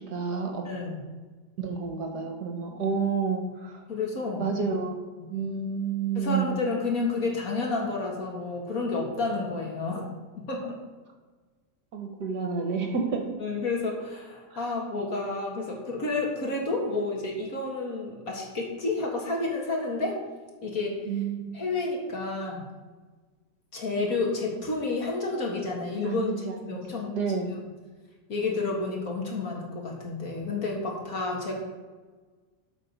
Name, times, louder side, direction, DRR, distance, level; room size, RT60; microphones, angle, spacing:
voice 1, 0.1-0.7 1.6-3.8 4.4-4.9 5.3-6.6 11.9-13.3 14.5-14.6 21.1-21.6 26.0-26.8 27.1-27.5, right 5 dB, 60° right, 3 dB, 1.6 m, -30 dB
voice 2, 0.6-1.0 3.9-4.5 6.2-10.0 10.4-10.8 13.4-20.2 20.6-21.0 21.5-22.6 23.7-27.1 27.5-27.6 28.3-31.6, left 3 dB, 50° left, -1 dB, 2.2 m, -30 dB
13.0 x 4.9 x 5.3 m, 1.4 s
omnidirectional pair, 2.0 m